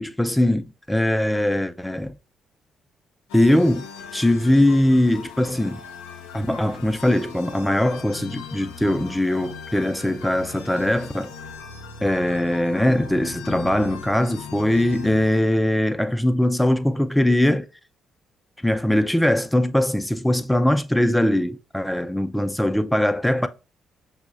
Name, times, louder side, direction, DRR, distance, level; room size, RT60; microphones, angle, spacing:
voice 1, 0.0-2.2 3.3-3.9 4.1-5.8 6.3-11.3 12.0-17.7 18.6-23.5, left 1 dB, 5° left, 0.3 m, -21 dB
sound 1, 3.3-15.6, left 5 dB, 85° left, 0.4 m, -39 dB
5.9 x 2.1 x 2.4 m
hypercardioid pair, 50°, 0 cm